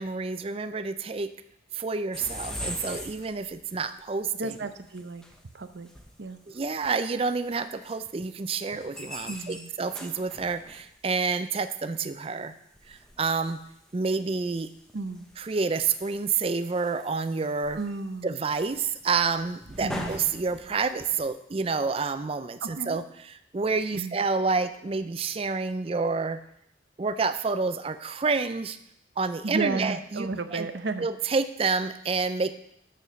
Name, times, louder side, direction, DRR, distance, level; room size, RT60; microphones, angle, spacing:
voice 1, 0.0-1.3 1.7-4.6 6.5-12.5 12.9-13.6 13.9-14.7 15.4-17.8 18.2-26.4 27.0-28.8 29.2-30.7 31.0-32.5, right 4 dB, 30° right, 11 dB, 0.4 m, -29 dB
sound 1, 2.1-3.8 4.5-4.6 5.0-5.4 5.7-6.9 7.5-7.6 7.8-8.0 8.7-10.9 12.4-12.5 12.8-14.0 14.5-21.3, equal, 5° left, 0.8 m, -41 dB
voice 2, 4.4-5.2 5.5-5.9 6.2-6.4 9.3-9.7 14.9-15.3 17.7-18.4 19.8-20.1 22.6-23.0 23.9-24.2 29.4-31.1, right 3 dB, 70° right, 9 dB, 0.7 m, -33 dB
7.0 x 6.8 x 6.2 m, 0.76 s
head